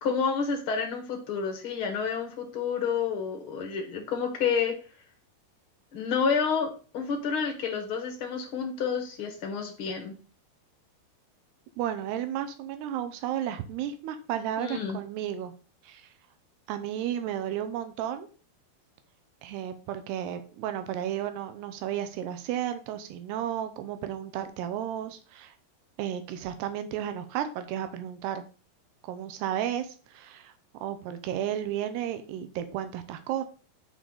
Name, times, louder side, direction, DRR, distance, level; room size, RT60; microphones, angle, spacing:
voice 1, 0.0-4.7 5.9-10.1 14.6-15.0, left 6 dB, 50° left, 4 dB, 1.7 m, -29 dB
voice 2, 11.8-15.5 15.8-16.1 16.7-18.3 19.4-25.5 26.0-28.4 29.0-30.5 30.8-33.4, right 10 dB, 85° right, 9 dB, 3.0 m, -33 dB
8.1 x 6.6 x 4.0 m, 0.37 s
omnidirectional pair, 4.7 m